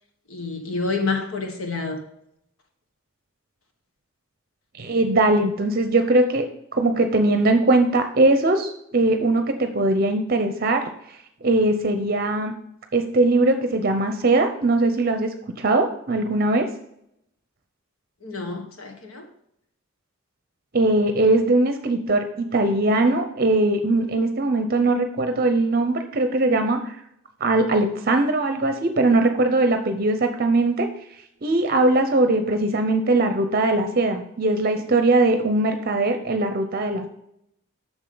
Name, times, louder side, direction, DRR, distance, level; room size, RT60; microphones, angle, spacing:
voice 1, 0.3-2.0 18.2-19.2, left 3 dB, 90° left, 1.5 m, -28 dB
voice 2, 4.8-6.4 6.7-10.9 11.4-12.5 12.9-16.7 20.7-27.0 27.4-30.9 31.4-37.1, right 2 dB, 45° right, 0.6 m, -20 dB
8.6 x 6.3 x 3.9 m
head